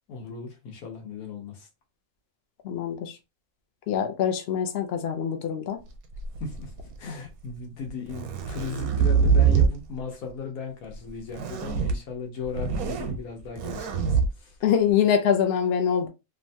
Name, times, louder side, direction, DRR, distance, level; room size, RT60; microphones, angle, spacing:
voice 1, 0.1-1.7 6.4-6.7 7.0-14.6, left 5 dB, 80° left, 1.4 m, -37 dB
voice 2, 2.6-3.2 3.9-5.8 7.1-7.2 14.6-16.1, left 8 dB, 60° left, 0.6 m, -24 dB
sound 1, 6.1-6.9 7.9-9.8 11.3-11.9 12.4-13.2 13.6-14.3, right 6 dB, 85° right, 1.1 m, -24 dB
3.1 x 2.2 x 2.6 m
omnidirectional pair, 1.5 m